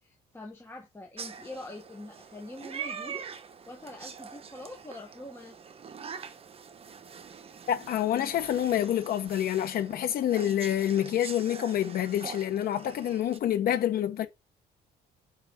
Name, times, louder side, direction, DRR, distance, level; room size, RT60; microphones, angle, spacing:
voice 1, 0.0-3.3 3.7-5.6, left 2 dB, 15° left, 1.3 m, -44 dB
sound 1, 1.2-13.4, right 7 dB, 35° right, 0.8 m, -44 dB
voice 2, 7.7-14.3, left 11 dB, 60° left, 1.1 m, -27 dB
4.9 x 4.8 x 6.3 m
cardioid pair, 110°, 17 cm